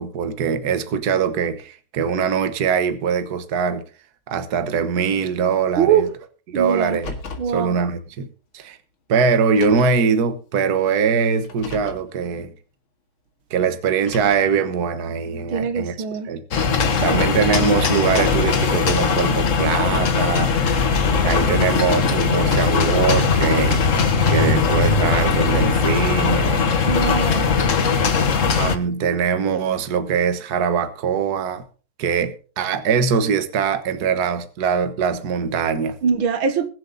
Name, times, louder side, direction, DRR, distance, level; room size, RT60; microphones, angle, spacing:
voice 1, 0.0-3.8 4.3-6.1 6.5-7.1 7.5-8.3 8.5-8.8 9.1-12.5 13.5-15.9 16.3-16.4 17.0-20.5 21.2-23.8 24.3-26.8 27.9-28.0 28.5-31.6 32.0-36.0, right 6 dB, 55° right, 1.6 m, -22 dB
voice 2, 5.8-6.1 6.5-7.0 7.4-7.8 15.5-16.3 16.9-17.4 26.9-27.5 36.0-36.7, right 7 dB, 75° right, 2.1 m, -22 dB
Car, 6.8-7.6 8.6-8.7 9.4-10.0 11.4-12.1 13.9-14.6, left 4 dB, 75° left, 2.8 m, -36 dB
sound 1, 16.5-28.8, left 5 dB, 45° left, 1.3 m, -19 dB
21.5 x 7.9 x 4.0 m
omnidirectional pair, 2.2 m